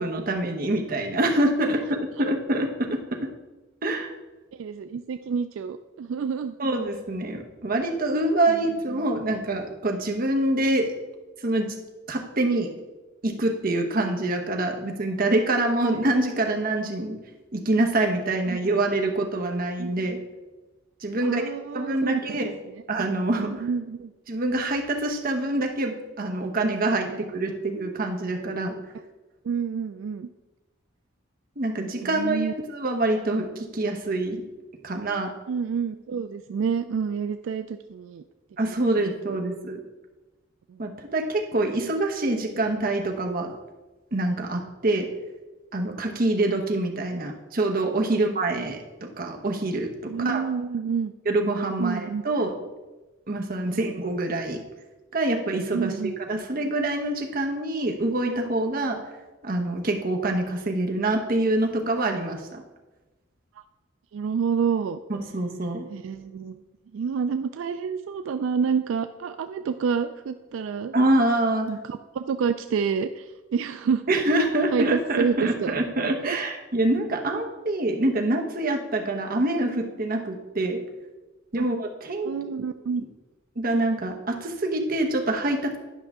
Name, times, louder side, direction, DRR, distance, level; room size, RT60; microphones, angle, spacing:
voice 1, 0.0-3.2 3.8-4.1 6.6-10.9 11.4-11.8 12.1-12.7 13.2-17.2 17.5-20.2 21.0-21.4 21.7-22.5 22.9-23.7 24.3-28.7 31.6-34.4 34.8-35.3 38.6-39.8 40.8-43.5 44.1-45.1 45.7-50.4 51.2-52.5 53.3-54.6 55.1-55.9 56.3-59.0 59.4-62.6 65.3-65.9 70.9-71.7 74.1-80.8 81.5-82.3 83.6-85.8, right 2 dB, 45° right, 3 dB, 1.0 m, -25 dB
voice 2, 4.5-6.6 8.5-8.6 15.9-16.0 18.5-18.6 19.8-20.0 21.2-22.2 23.4-24.1 27.1-27.2 29.4-30.3 32.0-32.5 35.5-38.2 39.0-39.4 40.7-40.8 47.1-47.2 48.1-48.3 50.1-51.1 51.8-52.2 53.7-53.9 55.7-56.2 63.6-63.7 64.1-65.0 65.9-66.6 66.9-70.9 71.7-74.0 74.7-75.7 76.2-76.4 81.6-81.7 82.2-83.0, right 6 dB, 75° right, 9 dB, 0.3 m, -28 dB
10.5 x 5.7 x 3.6 m, 1.1 s
head